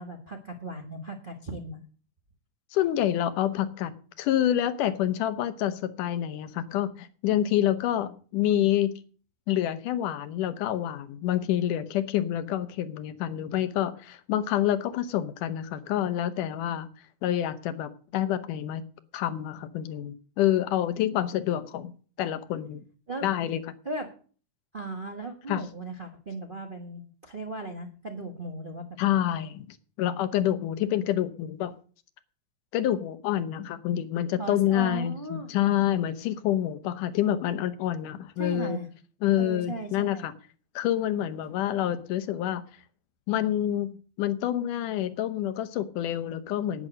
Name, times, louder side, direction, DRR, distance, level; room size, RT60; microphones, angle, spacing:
voice 1, 0.0-1.8 23.1-23.3 23.8-24.1 24.7-28.9 34.4-35.5 38.4-38.9 39.4-40.3, right 2 dB, 45° right, 3 dB, 0.6 m, -37 dB
voice 2, 2.7-3.9 4.2-9.0 9.5-16.9 17.2-18.8 19.1-21.9 22.2-22.8 23.2-23.6 25.5-25.6 29.0-31.7 32.7-38.8 39.2-40.3 40.8-42.6 43.3-46.9, left 12 dB, 80° left, 12 dB, 2.5 m, -27 dB
11.0 x 9.8 x 6.5 m, 0.41 s
omnidirectional pair, 3.7 m